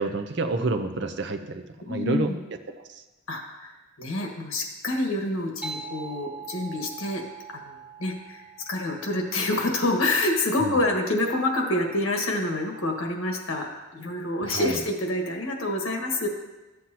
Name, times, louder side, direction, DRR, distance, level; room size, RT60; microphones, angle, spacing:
voice 1, 0.0-2.3 2.7-3.0 10.6-10.7 14.4-14.8, right 3 dB, 55° right, 7 dB, 0.6 m, -29 dB
voice 2, 1.9-2.4 3.3-7.2 7.5-13.7 13.9-16.3, left 2 dB, 75° left, 2 dB, 1.6 m, -27 dB
sound 1, 5.6-10.6, right 5 dB, 5° right, 0.8 m, -42 dB
13.0 x 7.5 x 2.9 m, 1.1 s
head